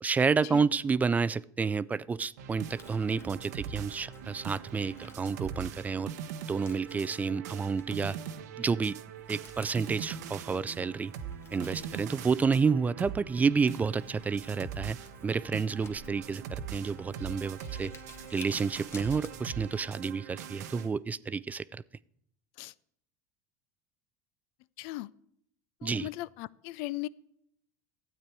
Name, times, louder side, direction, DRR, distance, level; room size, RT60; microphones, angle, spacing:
voice 1, 0.0-6.1 6.5-8.2 8.6-9.0 9.3-11.1 11.5-17.9 18.3-21.8 25.8-26.1, right 5 dB, 20° right, 19 dB, 0.3 m, -30 dB
sound 1, 2.4-20.9, right 8 dB, 85° right, 0.9 m, -42 dB
Crumpling crinkling, 2.6-20.0, left 3 dB, 30° left, 1.4 m, -55 dB
voice 2, 24.8-25.1 25.8-27.1, left 18 dB, 65° left, 20 dB, 0.4 m, -38 dB
12.5 x 8.7 x 4.7 m, 0.72 s
supercardioid pair, 105°, 9 cm